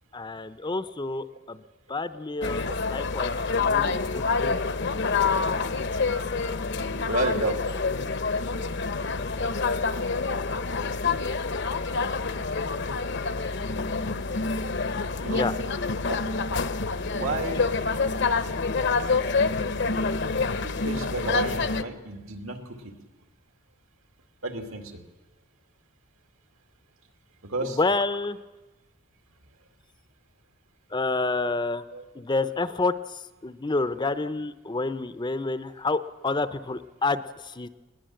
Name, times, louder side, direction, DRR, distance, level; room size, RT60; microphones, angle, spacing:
voice 1, 0.1-1.6 1.9-4.6 15.3-15.5 27.6-28.4 30.9-31.8 32.1-37.7, left 3 dB, 20° left, 12 dB, 0.6 m, -29 dB
sound 1, 2.4-21.8, left 4 dB, 55° left, 0.8 m, -27 dB
voice 2, 3.6-4.0 7.0-7.6 15.2-15.4 16.1-16.2 17.1-17.7 20.6-22.6 22.8-22.9 24.4-24.9 27.4-27.8 31.9-32.0, right 2 dB, 80° right, 5 dB, 2.6 m, -31 dB
20.5 x 18.5 x 7.8 m, 1.1 s
head